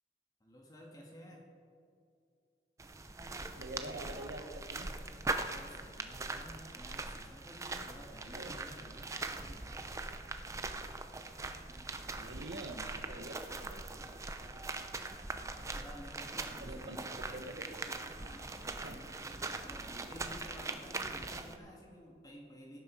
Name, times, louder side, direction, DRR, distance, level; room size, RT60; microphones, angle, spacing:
voice 1, 0.4-1.5 5.4-9.9 15.5-17.2 18.1-19.2 19.6-22.8, equal, 20° left, 0 dB, 1.7 m, -53 dB
sound 1, 2.8-21.6, right 3 dB, 15° right, 0.6 m, -41 dB
voice 2, 3.6-4.9 8.1-8.6 12.1-14.7 16.5-17.0 17.3-17.7 18.6-19.0, right 1 dB, 65° right, 6 dB, 1.3 m, -47 dB
17.5 x 9.9 x 5.0 m, 2.5 s
head